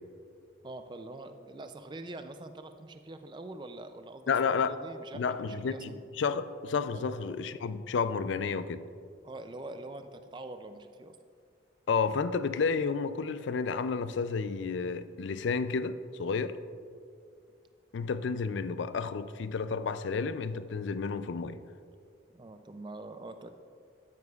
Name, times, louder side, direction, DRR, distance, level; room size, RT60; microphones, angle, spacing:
voice 1, 0.6-4.3 4.6-6.0 6.9-7.0 9.2-11.2 22.3-23.5, right 2 dB, 25° right, 0.3 m, -44 dB
voice 2, 4.3-4.7 5.1-5.9 6.2-8.8 11.9-16.6 17.9-21.6, left 5 dB, 70° left, 0.4 m, -31 dB
12.5 x 9.4 x 2.4 m
head